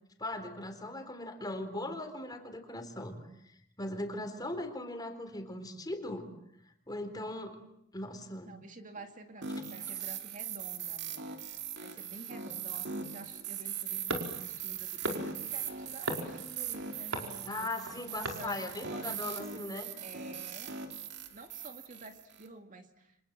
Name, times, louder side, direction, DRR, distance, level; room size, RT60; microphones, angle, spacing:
voice 1, 0.2-6.3 6.9-7.6 7.9-8.5 17.4-19.9, left 1 dB, 20° left, 6 dB, 4.0 m, -39 dB
voice 2, 8.4-17.7 18.1-20.7 21.3-23.2, right 2 dB, 40° right, 5 dB, 2.3 m, -50 dB
sound 1, 9.4-22.5, right 7 dB, 60° right, 2.6 m, -40 dB
sound 2, 14.1-19.2, right 1 dB, 80° right, 5.1 m, -40 dB
29.5 x 26.5 x 7.5 m, 0.76 s
head